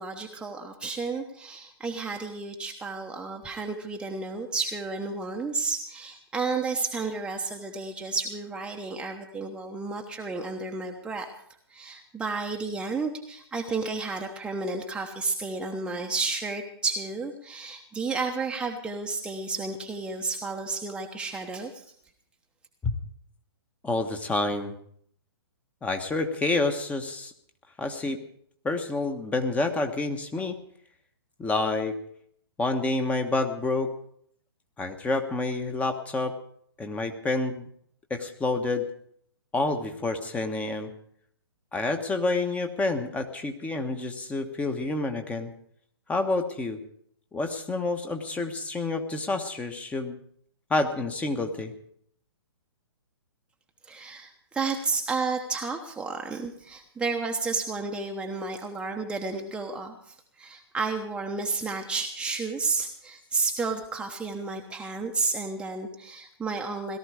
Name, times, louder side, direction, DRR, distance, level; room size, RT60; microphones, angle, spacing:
voice 1, 0.0-11.3 11.7-21.9 53.8-67.0, right 4 dB, 5° right, 2 dB, 1.0 m, -32 dB
voice 2, 23.8-24.7 25.8-27.3 27.8-28.2 28.6-30.6 31.4-31.9 32.6-33.9 34.8-36.3 36.8-37.7 38.1-38.9 39.5-40.9 41.7-45.5 46.1-46.8 47.3-50.2 50.7-51.7, left 3 dB, 10° left, 6 dB, 1.2 m, -28 dB
17.5 x 13.0 x 4.9 m, 0.65 s
figure-of-eight pair, 125°, 14 cm